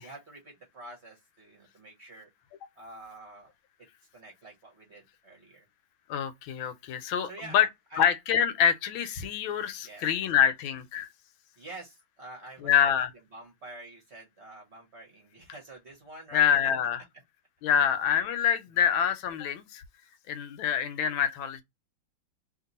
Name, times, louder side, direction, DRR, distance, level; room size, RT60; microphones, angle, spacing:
voice 1, 0.0-2.3 2.8-3.5 4.1-5.7 7.0-8.0 9.8-10.1 11.6-12.9 13.3-16.4 17.6-17.8 18.7-18.9, right 2 dB, 45° right, 1.0 m, -47 dB
voice 2, 6.1-7.7 8.0-11.1 12.6-13.1 16.3-17.0 17.6-19.8 20.3-21.6, left 9 dB, 80° left, 1.4 m, -26 dB
2.9 x 2.9 x 3.9 m
omnidirectional pair, 2.2 m